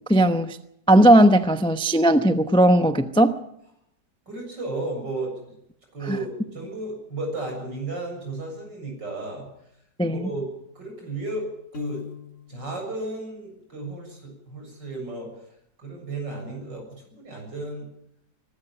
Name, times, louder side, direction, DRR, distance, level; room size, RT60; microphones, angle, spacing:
voice 1, 0.1-0.6 0.9-3.3 6.1-6.2 10.0-10.3, right 1 dB, 5° left, 10 dB, 0.4 m, -17 dB
voice 2, 4.3-5.3 5.9-9.5 10.1-10.4 10.7-11.5 11.7-12.0 12.5-15.3 15.8-17.9, right 2 dB, 80° right, 1 dB, 7.9 m, -33 dB
Piano, 11.7-12.7, left 7 dB, 45° left, 2.5 m, -37 dB
22.5 x 13.0 x 9.0 m, 0.77 s
omnidirectional pair, 1.9 m